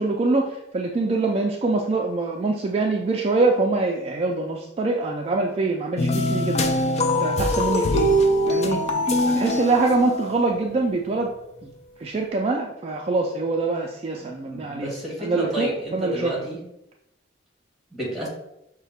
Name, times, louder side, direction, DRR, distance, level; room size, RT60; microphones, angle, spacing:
voice 1, 0.0-6.6 7.0-8.1 8.5-8.8 9.3-11.3 11.6-11.7 12.0-14.9 15.2-16.4, right 3 dB, 35° right, 0 dB, 0.4 m, -24 dB
sound 1, 6.0-10.6, left 1 dB, 35° left, 0.4 m, -22 dB
voice 2, 14.2-16.6 17.9-18.3, equal, ahead, -4 dB, 1.7 m, -31 dB
5.7 x 2.2 x 4.1 m, 0.82 s
head